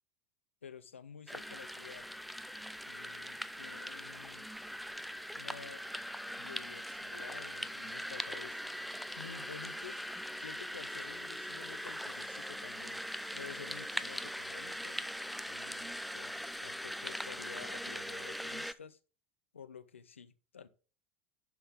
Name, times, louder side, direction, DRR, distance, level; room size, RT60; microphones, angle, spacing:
voice 1, 0.6-2.1 2.8-4.5 5.3-5.8 6.4-8.6 9.2-10.1 10.4-13.0 13.3-15.0 15.5-19.0 19.5-20.7, left 7 dB, 85° left, 0.7 m, -51 dB
sound 1, 1.3-18.7, equal, ahead, 0.5 m, -41 dB
10.0 x 5.7 x 3.5 m
figure-of-eight pair, 80°, 7 cm